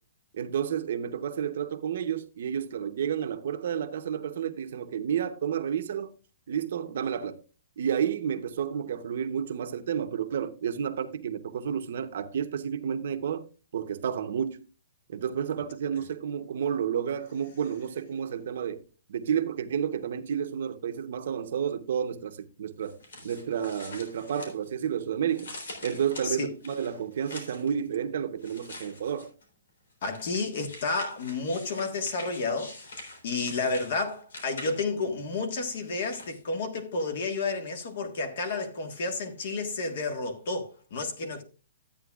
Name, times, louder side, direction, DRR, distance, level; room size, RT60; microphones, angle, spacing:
voice 1, 0.3-6.1 6.5-7.4 7.8-13.5 13.7-14.6 15.1-18.8 19.1-25.5 25.8-29.3, right 8 dB, 55° right, 0.8 m, -31 dB
sound 1, 22.8-24.9 25.3-27.7 28.4-29.4 30.0-35.0 35.6-36.4, left 2 dB, 85° left, 3.4 m, -45 dB
voice 2, 30.0-41.4, left 3 dB, 50° left, 1.6 m, -31 dB
13.0 x 8.7 x 2.4 m
hypercardioid pair, 170°, 0 cm